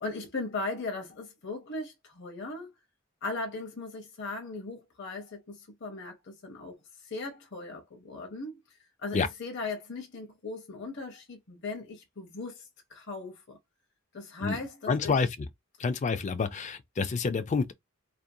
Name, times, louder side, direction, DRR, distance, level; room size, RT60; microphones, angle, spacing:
voice 1, 0.0-2.7 3.2-6.7 7.0-13.6 14.1-15.2, left 3 dB, 60° left, 0.7 m, -38 dB
voice 2, 14.9-15.5 15.8-17.7, left 4 dB, 35° left, 0.3 m, -28 dB
2.5 x 2.2 x 2.6 m
head